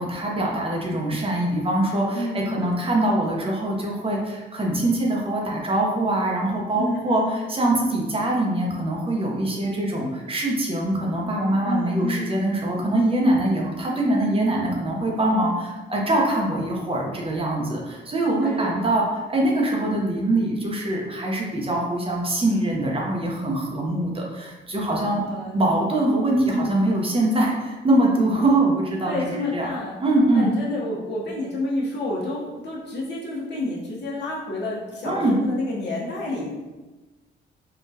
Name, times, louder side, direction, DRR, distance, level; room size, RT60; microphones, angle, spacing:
voice 1, 0.0-25.3 25.5-29.2 29.5-29.7 30.0-30.6 35.0-35.4, right 1 dB, 30° right, -1 dB, 0.7 m, -23 dB
voice 2, 2.1-2.9 6.7-7.4 11.6-12.4 18.4-18.9 25.2-25.6 26.4-26.8 29.0-30.0 30.3-36.5, left 1 dB, 60° left, -4 dB, 1.0 m, -29 dB
3.7 x 2.4 x 2.7 m, 1.2 s
cardioid pair, 90°, 20 cm